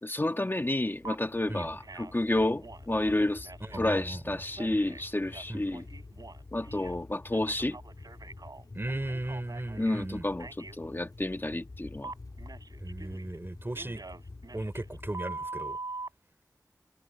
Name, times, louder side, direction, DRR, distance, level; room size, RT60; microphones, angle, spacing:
voice 1, 0.0-3.5 3.8-5.8 6.5-7.8 9.8-12.1, left 1 dB, 35° left, 1.9 m, -30 dB
sound 1, 0.8-15.2, left 3 dB, 80° left, 3.7 m, -48 dB
Telephone, 1.0-1.1 1.5-2.2 2.6-3.9 4.5-7.0 7.3-10.0 10.4-10.8 12.0-13.4 13.7-16.1, right 3 dB, 85° right, 7.9 m, -44 dB
voice 2, 3.6-4.4 5.5-5.6 8.7-10.3 12.8-14.0 14.5-15.8, right 1 dB, 35° right, 4.8 m, -36 dB
wide cardioid pair, 55°, 6 cm